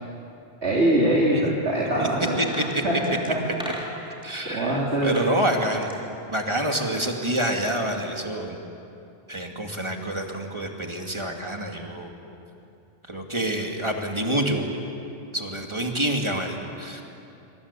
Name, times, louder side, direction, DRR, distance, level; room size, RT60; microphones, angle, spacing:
voice 1, 0.6-2.4 2.8-3.2 4.5-5.1, right 1 dB, 70° right, -5 dB, 3.4 m, -22 dB
sound 1, 2.3-4.3 4.9-5.4 5.7-7.0 7.3-7.4, equal, 5° right, 3.4 m, -38 dB
voice 2, 2.4-3.2 3.4-3.5 4.2-5.9 6.3-8.6 9.3-12.1 13.1-14.7 15.3-17.0, right 1 dB, 25° right, 2 dB, 2.7 m, -27 dB
26.5 x 25.5 x 8.4 m, 2.7 s
omnidirectional pair, 1.2 m